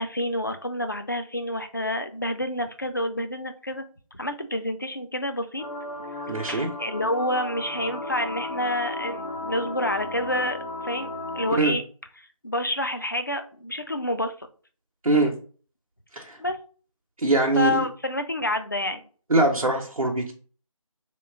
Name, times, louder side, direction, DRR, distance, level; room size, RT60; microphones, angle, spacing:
voice 1, 0.0-5.7 6.3-11.1 11.3-11.8 12.2-14.5 16.4-16.6 17.6-19.0, left 1 dB, 35° left, 0.4 m, -28 dB
sound 1, 5.6-11.5, left 2 dB, 85° left, 1.1 m, -34 dB
voice 2, 6.3-6.7 11.6-11.8 15.0-15.3 16.1-16.4 17.2-17.9 19.3-20.3, right 2 dB, 80° right, 0.8 m, -22 dB
2.9 x 2.9 x 3.5 m
figure-of-eight pair, 160°, 18 cm